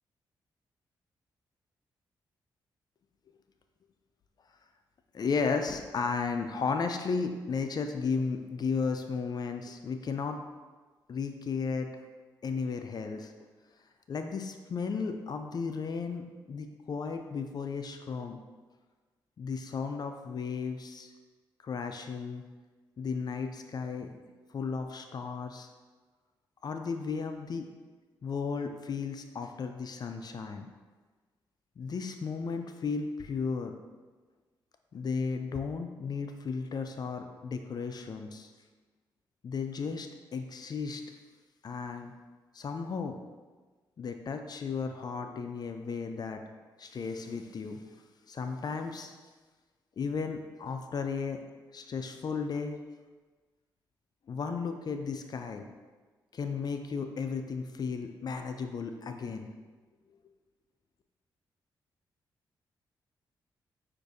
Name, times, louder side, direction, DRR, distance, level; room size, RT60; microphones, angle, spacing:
voice 1, 5.1-10.4 11.1-11.9 12.4-13.3 14.1-18.4 19.4-21.1 21.6-22.4 23.0-24.1 24.5-25.7 26.6-27.7 28.2-30.7 31.8-33.7 34.9-38.5 39.4-41.0 41.6-42.1 42.5-43.2 44.0-46.4 46.8-47.8 48.3-49.1 50.0-51.4 51.7-52.8 54.3-55.7 56.3-59.5, left 5 dB, 50° left, 6 dB, 0.4 m, -34 dB
6.0 x 2.5 x 2.6 m, 1.3 s
supercardioid pair, 55°, 9 cm